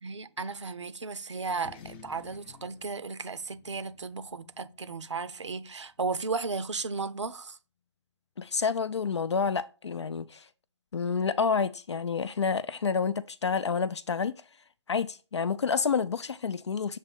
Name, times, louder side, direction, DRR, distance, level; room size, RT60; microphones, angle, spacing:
voice 1, 0.0-7.6, right 4 dB, 75° right, 0.8 m, -35 dB
sound 1, 1.5-6.3, left 6 dB, 20° left, 0.5 m, -54 dB
voice 2, 8.4-10.5 10.9-14.4 14.9-17.0, left 5 dB, 70° left, 0.5 m, -29 dB
7.3 x 2.7 x 5.4 m
figure-of-eight pair, 145°, 15 cm